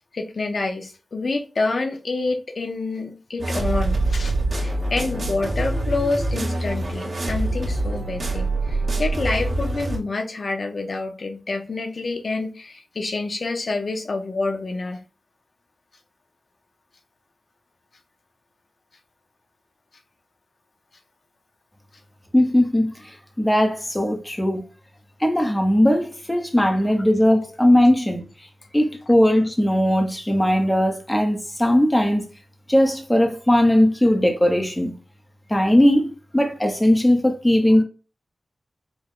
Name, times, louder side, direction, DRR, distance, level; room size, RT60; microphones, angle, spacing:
voice 1, 0.1-15.0, left 3 dB, 60° left, 0.9 m, -27 dB
sound 1, 3.4-10.0, right 2 dB, 60° right, 1.5 m, -25 dB
voice 2, 22.3-24.6 25.2-28.2 28.7-32.3 32.7-34.9 35.5-37.8, left 1 dB, 10° left, 0.9 m, -19 dB
5.3 x 2.3 x 3.7 m
wide cardioid pair, 115°, 0 cm